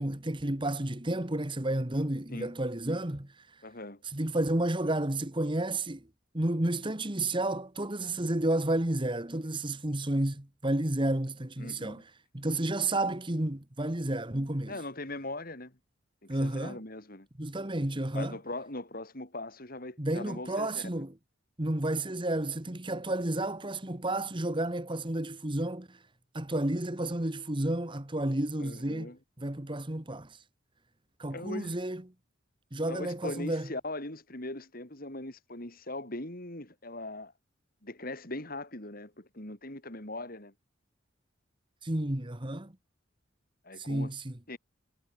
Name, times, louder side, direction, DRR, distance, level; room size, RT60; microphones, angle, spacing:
voice 1, 0.0-3.5 4.1-6.1 6.3-12.0 12.3-14.8 16.3-16.8 17.4-18.4 20.0-21.1 21.6-26.0 26.3-30.4 31.2-32.0 32.7-33.7 41.8-42.7 43.8-44.4, right 1 dB, 25° right, 1.6 m, -31 dB
voice 2, 3.6-4.0 11.6-12.0 14.7-15.8 16.2-17.3 18.1-21.0 28.6-29.2 31.3-31.8 32.9-37.3 37.8-40.5 43.6-44.1 44.5-44.6, left 2 dB, 45° left, 3.8 m, -40 dB
head